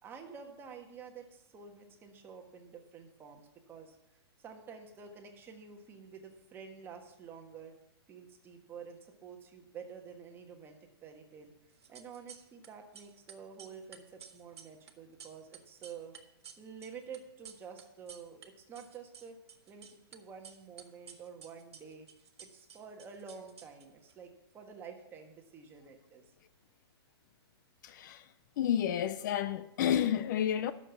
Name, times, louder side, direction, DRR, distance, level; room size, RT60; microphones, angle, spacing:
voice 1, 0.0-3.9 4.4-7.7 8.1-11.5 11.9-16.1 16.6-19.4 19.7-22.1 22.4-26.2, right 6 dB, 15° right, 1.4 m, -49 dB
sound 1, 11.7-12.7 12.9-18.5 18.7-20.2 20.4-24.1, right 7 dB, 85° right, 1.5 m, -53 dB
voice 2, 27.8-28.3 28.6-30.7, left 10 dB, 45° left, 0.5 m, -30 dB
11.5 x 6.8 x 6.9 m
hypercardioid pair, 150°, 14 cm